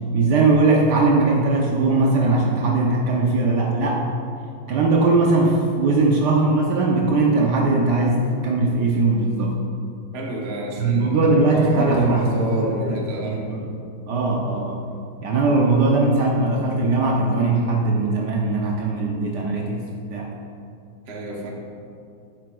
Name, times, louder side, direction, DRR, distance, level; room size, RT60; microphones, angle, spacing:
voice 1, 0.1-4.1 4.7-9.6 10.8-13.7 14.1-14.8 15.2-19.8 20.1-20.3, right 3 dB, 70° right, -1 dB, 1.1 m, -20 dB
voice 2, 10.1-13.4 21.1-21.5, right 2 dB, 50° right, -1 dB, 0.8 m, -27 dB
9.2 x 7.6 x 2.3 m, 2.6 s
omnidirectional pair, 2.2 m